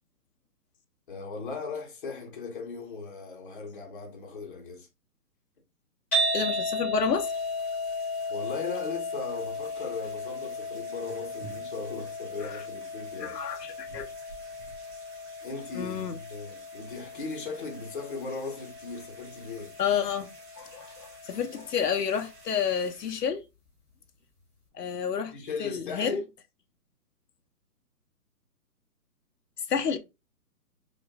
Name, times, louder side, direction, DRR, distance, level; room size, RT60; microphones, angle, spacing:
voice 1, 1.1-4.9 8.3-13.4 15.4-19.7 25.3-26.2, left 4 dB, 35° left, 1.0 m, -38 dB
sound 1, 6.1-22.3, left 1 dB, 10° left, 0.6 m, -35 dB
voice 2, 6.3-7.3 12.4-12.6 13.2-14.1 15.7-16.2 19.8-20.3 20.6-23.5 24.7-25.3 25.6-26.2 29.7-30.0, left 7 dB, 80° left, 0.8 m, -30 dB
sound 2, 7.2-23.2, right 3 dB, 20° right, 1.4 m, -52 dB
5.1 x 2.5 x 2.3 m
hypercardioid pair, 160°, 47 cm